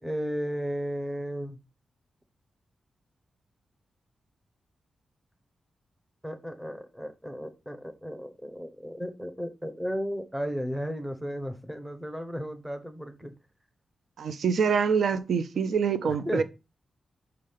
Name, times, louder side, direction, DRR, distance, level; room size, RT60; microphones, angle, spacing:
voice 1, 0.0-1.6 6.2-13.3 16.0-16.4, equal, 5° right, 0.9 m, -34 dB
voice 2, 14.2-16.4, right 6 dB, 70° right, 0.6 m, -25 dB
5.6 x 5.1 x 5.6 m
wide cardioid pair, 175°, 0 cm